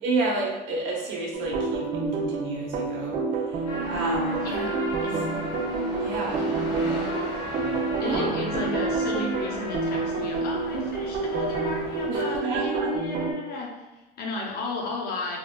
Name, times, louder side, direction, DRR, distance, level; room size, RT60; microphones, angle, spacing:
voice 1, 0.0-4.7 5.0-5.1 6.0-6.5 8.0-8.3 12.1-12.9, right 2 dB, 70° right, -3 dB, 1.0 m, -30 dB
sound 1, 1.3-13.3, right 4 dB, 45° right, 0.5 m, -29 dB
sound 2, 3.7-12.1, left 1 dB, 85° left, 0.9 m, -36 dB
voice 2, 4.4-5.4 6.4-6.7 8.0-15.4, left 3 dB, 50° left, -1 dB, 0.8 m, -34 dB
3.7 x 2.3 x 2.2 m, 1.0 s
cardioid pair, 125°, 20 cm